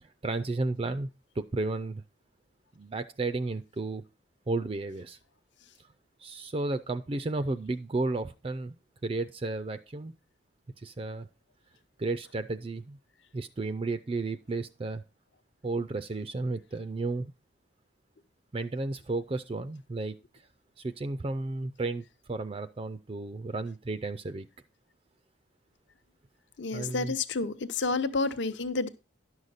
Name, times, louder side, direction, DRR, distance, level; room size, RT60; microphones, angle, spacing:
voice 1, 0.0-1.1 1.4-2.0 2.7-4.0 4.5-5.2 6.2-8.7 9.0-10.1 10.8-11.3 12.0-13.0 13.3-15.0 15.6-17.3 18.5-20.1 20.8-24.5 26.7-27.1, right 3 dB, 25° right, 0.4 m, -33 dB
voice 2, 26.6-28.9, left 3 dB, 60° left, 0.8 m, -30 dB
11.0 x 6.5 x 4.0 m
head